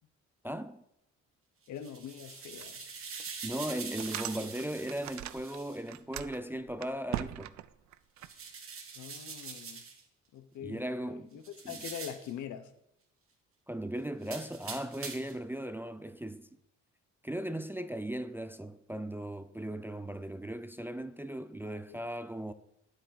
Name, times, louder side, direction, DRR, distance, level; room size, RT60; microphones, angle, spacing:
voice 1, 0.4-0.8 3.4-7.6 10.6-11.3 11.6-11.8 13.7-16.5 17.2-22.5, right 1 dB, 5° right, 0.4 m, -37 dB
voice 2, 1.7-2.9 8.9-9.8 10.3-12.7 21.7-22.0, left 9 dB, 70° left, 0.9 m, -44 dB
sound 1, 1.7-5.8 8.2-10.0 11.4-12.3 14.2-15.4, right 5 dB, 45° right, 1.7 m, -44 dB
sound 2, 2.6-2.7 3.2-3.3 3.7-5.6 5.8-8.3, right 13 dB, 65° right, 0.5 m, -40 dB
9.2 x 8.0 x 4.1 m
cardioid pair, 90°, 30 cm